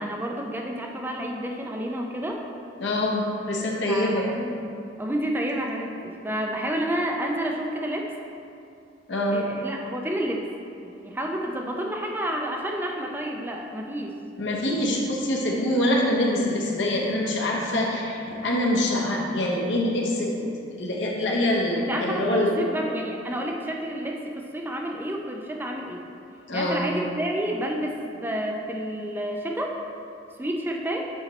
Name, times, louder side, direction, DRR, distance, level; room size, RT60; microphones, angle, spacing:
voice 1, 0.0-2.3 3.9-4.6 5.0-8.1 9.3-10.5 10.8-14.1 21.8-26.0 26.5-29.8 30.4-31.1, right 1 dB, 10° right, 1 dB, 0.4 m, -30 dB
voice 2, 2.8-4.3 9.1-9.4 14.4-20.5 20.8-22.5 26.5-26.8, left 1 dB, 70° left, -2 dB, 0.9 m, -25 dB
7.6 x 3.1 x 4.2 m, 2.6 s
head